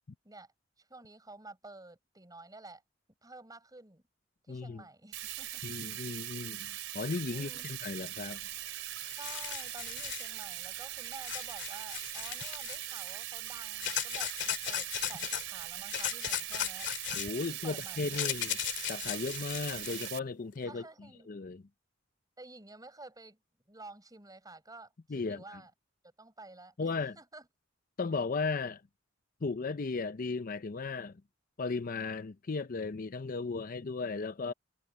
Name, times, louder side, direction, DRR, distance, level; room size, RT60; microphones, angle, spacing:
voice 1, 0.8-2.8 3.2-4.0 4.5-5.6 7.3-7.8 9.2-16.9 17.5-18.5 20.6-21.3 22.4-23.4 23.7-25.7 26.0-27.5, right 2 dB, 20° right, 5.1 m, -51 dB
voice 2, 4.5-4.8 5.6-8.4 17.1-18.6 18.8-20.8 21.3-21.6 25.1-25.6 26.8-27.2 28.0-28.8 29.4-31.2 31.6-34.5, left 4 dB, 45° left, 0.6 m, -36 dB
Bathtub (filling or washing), 5.1-20.2, right 13 dB, 80° right, 3.4 m, -41 dB
sound 1, 8.7-8.8 9.0-10.3 11.2-12.9 13.8-15.4 15.9-20.1, left 11 dB, 65° left, 2.3 m, -37 dB
head